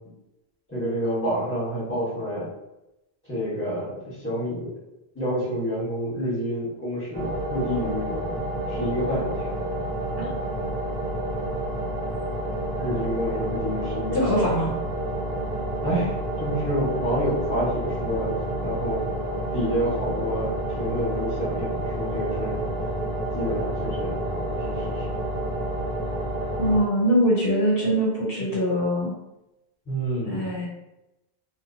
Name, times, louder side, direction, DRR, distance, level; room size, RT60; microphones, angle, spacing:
voice 1, 0.7-2.5 3.2-4.7 5.1-8.2 8.7-9.5 12.8-14.4 15.4-15.6 15.8-19.1 19.5-22.6 23.3-25.1 29.9-30.4, equal, 10° left, -8 dB, 1.1 m, -28 dB
sound 1, 7.1-26.8, right 1 dB, 45° right, 0.7 m, -29 dB
voice 2, 14.1-14.7 26.6-29.1 30.2-30.7, equal, 70° left, -4 dB, 0.9 m, -22 dB
2.6 x 2.2 x 2.6 m, 0.92 s
omnidirectional pair, 1.0 m